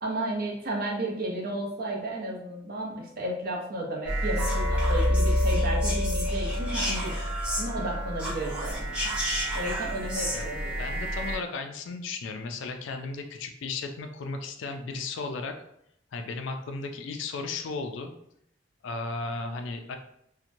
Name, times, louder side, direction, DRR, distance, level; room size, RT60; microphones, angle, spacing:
voice 1, 0.0-7.3 7.6-8.8 9.5-11.0, right 1 dB, 50° right, -1 dB, 0.7 m, -33 dB
sound 1, 4.0-11.4, equal, 5° right, 0.6 m, -28 dB
voice 2, 10.8-15.5 16.1-18.1 18.8-20.0, left 3 dB, 70° left, 5 dB, 0.4 m, -35 dB
2.8 x 2.1 x 2.5 m, 0.74 s
head